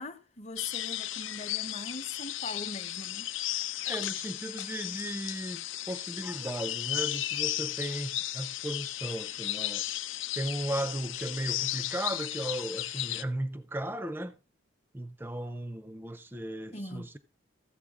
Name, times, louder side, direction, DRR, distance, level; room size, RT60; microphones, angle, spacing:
voice 1, 0.0-3.3 16.7-17.1, left 2 dB, 35° left, 0.8 m, -41 dB
sound 1, 0.6-13.2, left 14 dB, 75° left, 0.5 m, -35 dB
voice 2, 3.8-9.8 10.4-14.4 14.9-17.2, right 1 dB, 10° right, 0.4 m, -36 dB
14.5 x 7.7 x 3.6 m
head